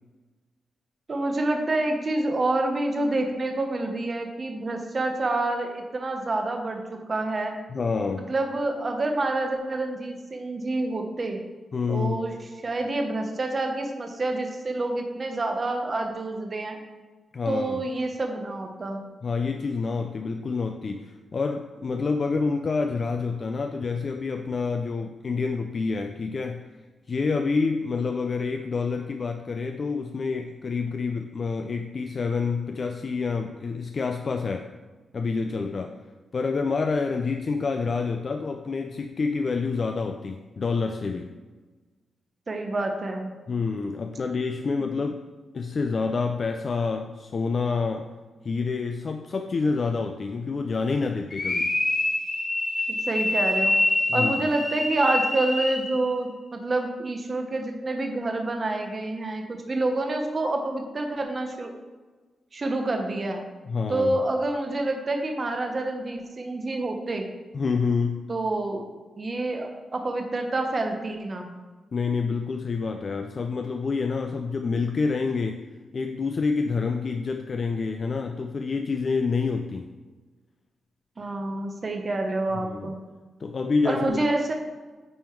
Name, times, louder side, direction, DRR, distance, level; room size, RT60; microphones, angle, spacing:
voice 1, 1.1-7.6 8.3-11.4 11.9-12.3 12.6-16.8 17.5-19.0 42.5-43.3 44.8-44.9 52.9-53.8 54.1-61.7 62.5-63.4 63.9-67.3 68.3-68.8 69.2-71.5 81.2-83.0 83.8-84.5, right 2 dB, 35° right, 4 dB, 0.9 m, -28 dB
voice 2, 7.7-8.3 11.7-12.3 17.3-17.8 19.2-26.6 27.1-34.7 35.1-36.0 36.3-41.3 43.5-45.2 45.5-48.1 48.4-51.7 54.1-54.5 63.7-64.2 67.5-68.3 71.9-75.6 75.9-79.9 82.5-82.9 83.4-84.2, left 4 dB, 40° left, 5 dB, 0.4 m, -28 dB
sound 1, 51.3-56.0, left 2 dB, 25° left, 1.0 m, -25 dB
9.2 x 3.8 x 4.5 m, 1.3 s
wide cardioid pair, 135°, 0 cm